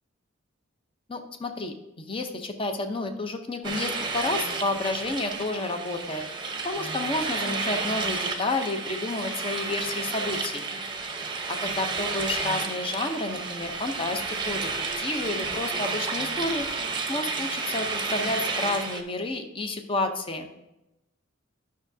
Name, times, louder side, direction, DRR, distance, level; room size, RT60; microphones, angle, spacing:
voice 1, 1.1-6.2 6.6-10.6 11.5-14.7 15.0-16.7 17.1-20.5, left 2 dB, 25° left, 6 dB, 0.6 m, -30 dB
sound 1, 3.6-19.0, right 4 dB, 25° right, 0.7 m, -31 dB
10.5 x 6.3 x 2.7 m, 0.93 s
head